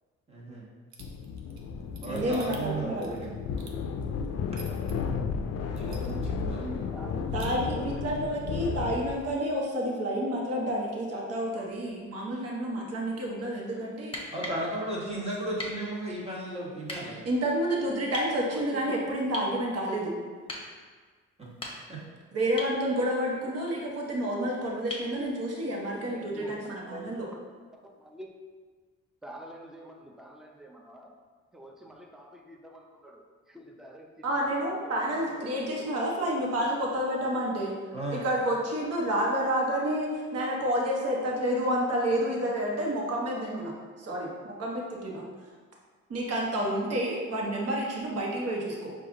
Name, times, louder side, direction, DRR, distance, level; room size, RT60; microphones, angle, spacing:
voice 1, 0.3-0.6 2.0-3.3 5.7-6.9 14.3-17.2 21.4-21.5 21.9-22.0 37.9-38.2, right 1 dB, 20° right, -5 dB, 1.3 m, -35 dB
sound 1, 0.9-4.9 5.4-5.5 5.8-6.4 6.7-6.8 7.1-7.5, right 5 dB, 70° right, 0.7 m, -49 dB
sound 2, 1.0-9.3, left 5 dB, 55° left, 0.4 m, -33 dB
voice 2, 2.1-3.2 7.3-14.3 17.2-20.1 22.3-27.3 34.2-37.7 38.1-43.7 44.0-45.2 46.1-48.9, equal, 55° right, -2 dB, 1.1 m, -29 dB
voice 3, 6.5-7.3 7.6-7.9 18.5-19.1 24.7-24.9 26.1-26.5 26.8-27.4 27.8-28.3 29.2-31.1 31.5-33.2 33.5-34.5 34.8-35.9 36.2-36.3, right 1 dB, ahead, 1 dB, 0.5 m, -46 dB
sound 3, 14.0-14.6 15.6-15.8 16.8-17.0 18.1-18.3 19.3-19.6 20.5-20.7 21.4-22.0 22.6-22.8 24.9-25.1 27.0-27.1, left 2 dB, 20° left, 1.0 m, -38 dB
4.7 x 2.4 x 3.8 m, 1.5 s
cardioid pair, 70°, 29 cm